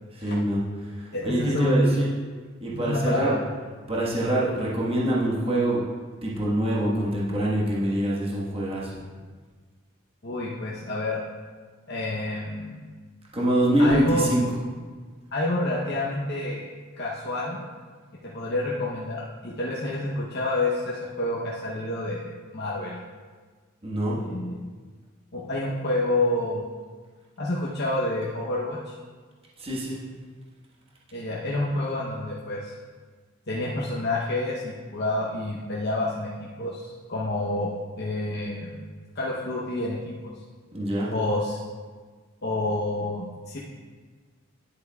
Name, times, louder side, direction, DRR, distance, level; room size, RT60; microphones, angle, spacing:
voice 1, 0.1-2.1 2.6-3.4 3.9-5.8 6.2-8.9 13.3-14.4 23.8-24.2 29.6-30.0 40.7-41.1, right 1 dB, 30° right, -6 dB, 1.4 m, -25 dB
voice 2, 1.1-2.1 2.8-3.3 10.2-11.2 11.9-12.7 13.8-14.3 15.3-16.6 17.0-17.6 18.2-23.0 24.2-24.7 25.3-26.6 27.4-28.9 31.1-32.7 33.5-38.8 39.1-40.3 41.1-41.6 42.4-43.6, left 1 dB, 50° left, -6 dB, 0.9 m, -28 dB
10.5 x 8.2 x 2.3 m, 1.5 s
head